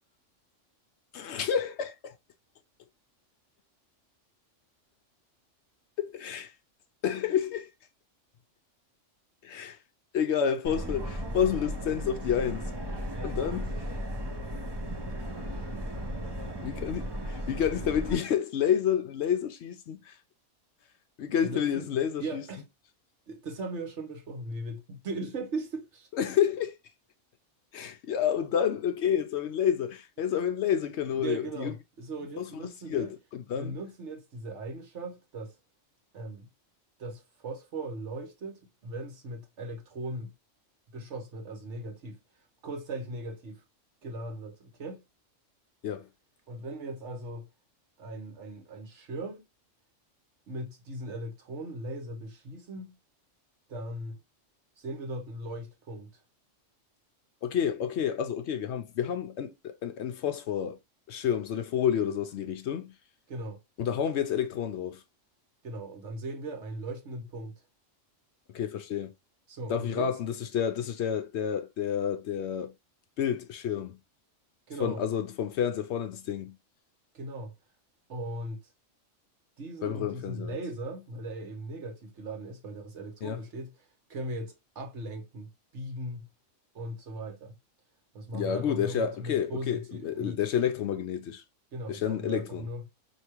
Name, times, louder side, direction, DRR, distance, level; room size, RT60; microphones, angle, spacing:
voice 1, 1.1-2.1 6.0-6.5 7.0-7.7 9.4-9.8 10.1-12.7 13.2-13.7 16.6-20.1 21.2-22.4 26.2-26.7 27.7-31.7 32.4-32.5 32.9-33.7 45.8-46.1 57.4-60.8 61.1-62.9 63.8-65.0 68.5-69.1 69.7-72.7 73.2-74.0 74.8-76.5 79.8-80.5 83.2-83.4 88.3-91.4 91.9-92.7, left 8 dB, 65° left, 0.8 m, -29 dB
Subway metro underground, 10.6-18.1, equal, 25° right, 0.6 m, -35 dB
voice 2, 21.4-21.9 22.2-22.6 23.3-26.1 31.1-33.1 33.5-35.6 36.1-36.5 37.0-40.3 40.9-42.2 42.6-43.6 44.0-45.0 46.5-47.5 48.0-49.4 50.5-52.9 53.7-54.2 54.8-56.1 63.3-63.6 65.6-67.6 69.5-70.2 74.7-75.0 77.1-77.5 78.1-78.6 79.6-83.7 84.1-86.3 86.7-87.5 88.1-90.4 91.7-92.9, right 1 dB, 65° right, 1.3 m, -38 dB
4.6 x 2.9 x 2.9 m
omnidirectional pair, 1.3 m